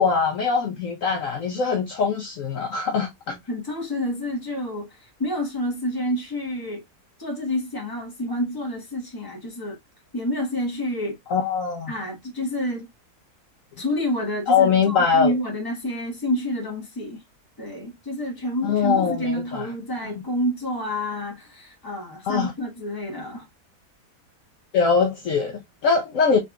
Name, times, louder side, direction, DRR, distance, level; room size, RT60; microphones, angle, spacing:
voice 1, 0.0-3.4 11.3-11.9 14.5-15.3 18.6-19.7 22.3-22.5 24.7-26.4, left 5 dB, 60° left, 1.0 m, -22 dB
voice 2, 3.5-6.8 7.2-9.8 10.1-11.2 11.9-12.9 13.8-17.2 17.6-23.5, left 1 dB, 15° left, 1.2 m, -28 dB
3.9 x 3.3 x 2.3 m
omnidirectional pair, 1.7 m